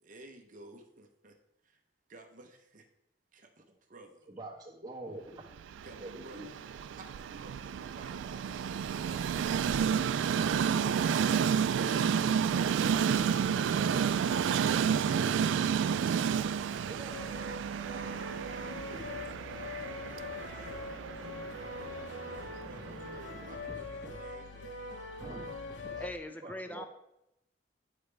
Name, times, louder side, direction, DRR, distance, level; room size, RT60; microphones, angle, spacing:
voice 1, 0.0-1.3 2.1-2.8 3.3-4.3 5.8-8.4 16.6-17.0 20.3-20.9 21.9-25.1, right 2 dB, 45° right, 3 dB, 0.7 m, -54 dB
voice 2, 4.3-5.6 6.0-6.5 16.8-17.4 18.9-19.4 22.6-24.1 25.2-25.5 25.8-25.9 26.4-26.9, right 1 dB, 20° right, -4 dB, 1.5 m, -47 dB
Train, 5.6-23.7, right 7 dB, 85° right, 0.3 m, -31 dB
sound 1, 17.1-26.1, left 3 dB, 80° left, 0.8 m, -42 dB
voice 3, 26.0-26.8, left 1 dB, 10° left, 8 dB, 0.5 m, -41 dB
9.8 x 4.9 x 3.4 m, 0.84 s
head